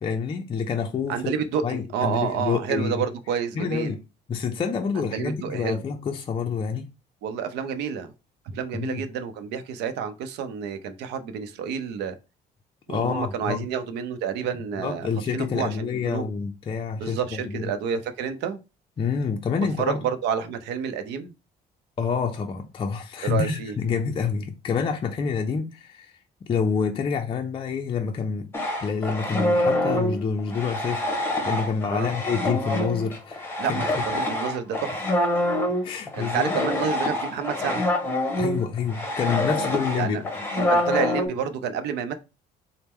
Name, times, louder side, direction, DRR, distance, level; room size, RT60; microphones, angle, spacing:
voice 1, 0.0-1.3 1.6-3.0 3.6-4.0 4.3-6.9 8.7-9.0 12.9-13.7 14.8-17.7 19.0-20.1 22.0-26.1 26.5-28.5 28.8-34.3 35.8-36.6 38.4-40.2, left 6 dB, 30° left, 0.4 m, -28 dB
voice 2, 1.1-3.9 4.9-5.8 7.2-8.1 8.4-12.2 12.9-16.3 17.0-18.6 19.5-21.3 23.2-23.8 31.9-32.1 33.6-35.1 36.1-37.9 40.0-40.2 40.5-42.1, right 7 dB, 85° right, 0.6 m, -29 dB
sound 1, 28.5-41.3, left 1 dB, 15° left, 1.0 m, -26 dB
4.2 x 2.1 x 3.5 m
cardioid pair, 110°, 17 cm